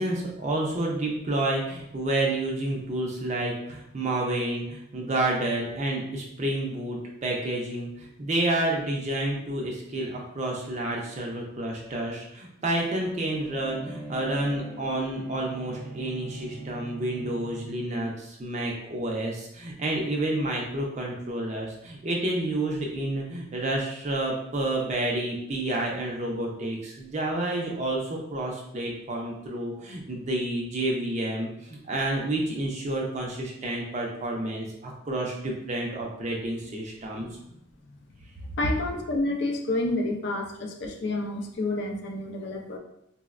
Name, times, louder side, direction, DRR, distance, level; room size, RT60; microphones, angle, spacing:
voice 1, 0.0-37.3, right 1 dB, 35° right, -1 dB, 0.4 m, -29 dB
Bowed string instrument, 13.2-17.9, right 1 dB, 30° left, 1.0 m, -42 dB
voice 2, 38.6-42.8, left 2 dB, 55° left, 2 dB, 0.4 m, -29 dB
3.9 x 2.0 x 2.4 m, 0.79 s
head